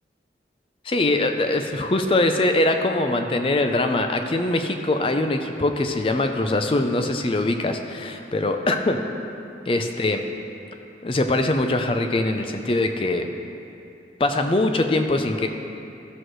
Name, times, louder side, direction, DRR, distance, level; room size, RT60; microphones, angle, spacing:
voice 1, 0.8-9.0 9.7-10.2 11.0-13.3 14.2-15.5, left 2 dB, 30° left, 6 dB, 0.4 m, -22 dB
13.5 x 6.2 x 3.1 m, 2.7 s
head